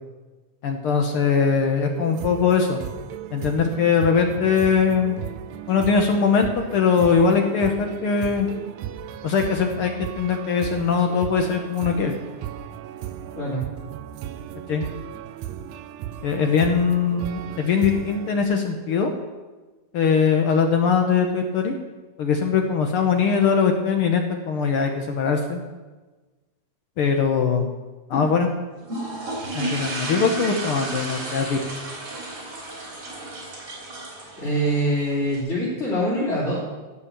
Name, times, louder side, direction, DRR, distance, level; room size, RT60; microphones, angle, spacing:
voice 1, 0.6-2.8 3.3-5.1 5.7-8.5 9.2-12.2 14.7-14.8 16.2-19.1 19.9-21.7 22.2-25.6 27.0-27.7 28.1-28.5 29.5-31.6, left 6 dB, 65° left, 4 dB, 1.5 m, -21 dB
sound 1, 1.9-18.4, right 10 dB, 80° right, 1.8 m, -36 dB
sound 2, 28.8-35.4, right 2 dB, 50° right, 4.1 m, -33 dB
voice 2, 34.4-36.7, equal, 25° left, -9 dB, 3.3 m, -24 dB
16.5 x 5.8 x 6.7 m, 1.2 s
omnidirectional pair, 3.3 m